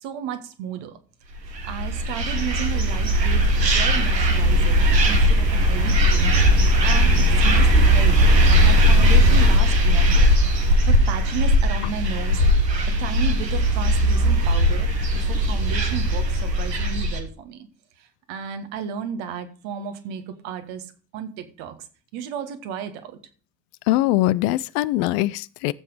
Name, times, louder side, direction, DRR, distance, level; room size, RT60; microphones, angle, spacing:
voice 1, 0.0-1.0 1.6-6.4 6.8-7.1 7.4-8.2 8.6-10.3 10.9-12.4 13.0-14.9 15.1-17.7 18.3-20.9 21.1-21.8 22.1-23.2, right 7 dB, 70° right, 1.7 m, -33 dB
sound 1, 1.5-17.2, equal, 90° right, 1.4 m, -18 dB
voice 2, 23.9-25.7, left 16 dB, 70° left, 0.7 m, -22 dB
15.0 x 7.9 x 4.9 m
figure-of-eight pair, 40°, 48 cm